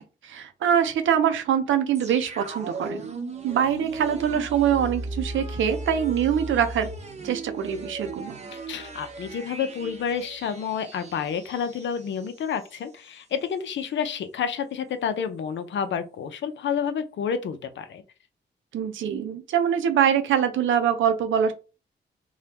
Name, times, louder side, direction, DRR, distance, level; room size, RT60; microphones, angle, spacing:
voice 1, 0.0-3.1 3.4-6.9 7.2-8.4 18.7-21.5, right 8 dB, 80° right, 9 dB, 0.6 m, -24 dB
sound 1, 2.0-12.8 13.1-13.2, right 2 dB, 35° right, 0.8 m, -37 dB
voice 2, 8.5-18.0, left 7 dB, 70° left, 10 dB, 0.6 m, -29 dB
2.8 x 2.3 x 3.3 m, 0.32 s
cardioid pair, 55°, 20 cm